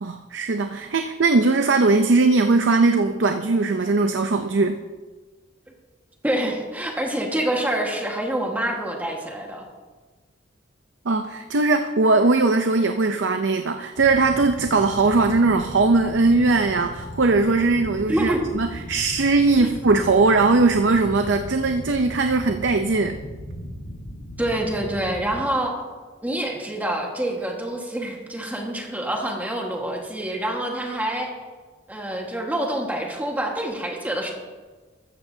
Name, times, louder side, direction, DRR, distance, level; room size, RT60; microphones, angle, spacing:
voice 1, 0.0-4.8 11.1-23.2, right 3 dB, 85° right, 7 dB, 0.6 m, -20 dB
voice 2, 6.2-9.6 18.1-18.4 19.6-19.7 24.4-25.7 26.2-31.3 31.9-34.3, right 1 dB, 10° right, 0 dB, 1.6 m, -26 dB
sound 1, 14.0-25.4, equal, 80° left, 1.8 m, -37 dB
14.0 x 14.0 x 2.8 m, 1.4 s
head